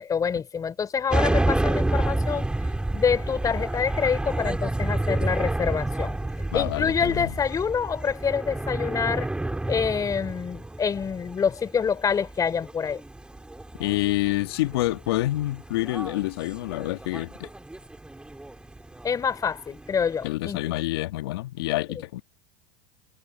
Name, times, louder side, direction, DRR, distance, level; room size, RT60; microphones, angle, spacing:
voice 1, 0.0-2.5 2.9-6.2 6.5-9.3 9.7-13.0 19.0-20.6 21.9-22.0, left 6 dB, 25° left, 4.1 m, -26 dB
sound 1, 1.1-20.3, right 2 dB, 5° right, 6.3 m, -30 dB
voice 2, 6.5-7.3 13.8-17.5 20.2-22.2, left 17 dB, 70° left, 1.9 m, -27 dB
hypercardioid pair, 90°, 13 cm